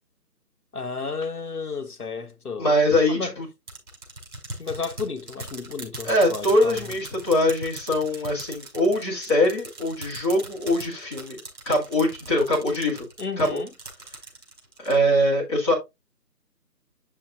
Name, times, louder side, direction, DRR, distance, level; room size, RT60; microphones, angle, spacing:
voice 1, 0.7-2.7 3.1-3.3 4.6-6.9 13.2-13.7, left 4 dB, 65° left, 1.3 m, -32 dB
voice 2, 2.6-3.5 6.0-11.4 11.7-13.1 13.4-13.6 14.8-15.7, left 1 dB, 15° left, 2.2 m, -22 dB
sound 1, 3.7-14.9, right 2 dB, 60° right, 4.5 m, -40 dB
8.3 x 6.9 x 2.4 m
figure-of-eight pair, 160°, 50 cm